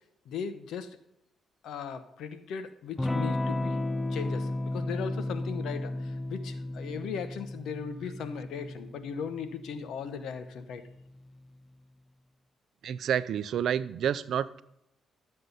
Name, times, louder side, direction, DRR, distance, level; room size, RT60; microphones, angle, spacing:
voice 1, 0.2-1.0 1.6-3.8 4.1-10.8, left 6 dB, 75° left, 10 dB, 1.0 m, -38 dB
Electric guitar / Strum, 3.0-11.3, left 2 dB, 15° left, 0.3 m, -34 dB
voice 2, 12.8-14.6, right 9 dB, 70° right, 15 dB, 0.5 m, -29 dB
12.5 x 7.7 x 4.0 m, 0.84 s
cardioid pair, 90°, 0 cm